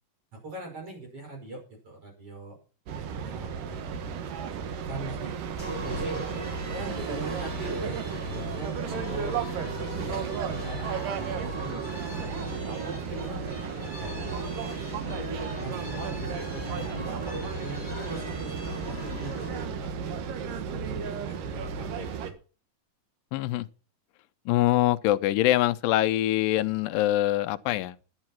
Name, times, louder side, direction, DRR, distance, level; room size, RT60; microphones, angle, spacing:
voice 1, 0.4-2.6 2.9-3.8 4.5-5.3 5.7-6.4 6.7-11.8 12.4-14.4 15.1-15.3 15.6-17.2 17.6-22.3, right 2 dB, 40° right, 6.4 m, -41 dB
sound 1, 2.9-22.3, right 6 dB, 75° right, 2.8 m, -34 dB
sound 2, 5.6-19.7, equal, 5° right, 7.0 m, -39 dB
voice 2, 23.3-23.7 24.5-28.0, left 15 dB, 80° left, 2.3 m, -24 dB
11.5 x 8.9 x 6.0 m
omnidirectional pair, 4.0 m